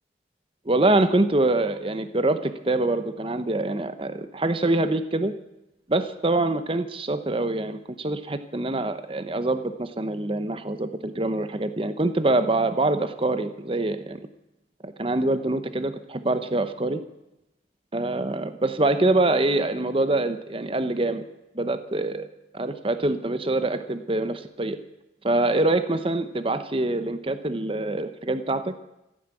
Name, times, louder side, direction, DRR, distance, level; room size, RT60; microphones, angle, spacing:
voice 1, 0.6-5.3 5.9-14.3 14.8-17.0 17.9-21.2 21.5-22.3 22.5-24.8 25.2-28.7, right 2 dB, 30° right, 10 dB, 0.9 m, -25 dB
15.0 x 10.0 x 9.0 m, 0.89 s
head